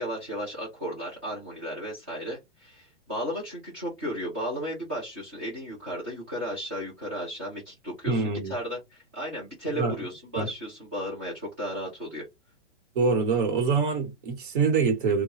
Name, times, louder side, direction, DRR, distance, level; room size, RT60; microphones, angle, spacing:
voice 1, 0.0-8.2 8.5-12.3, equal, 10° right, 0.4 m, -34 dB
voice 2, 8.1-8.5 9.7-10.0 10.3-10.5 12.9-15.2, right 4 dB, 45° right, 1.3 m, -25 dB
3.6 x 2.3 x 2.9 m
hypercardioid pair, 175°, 35 cm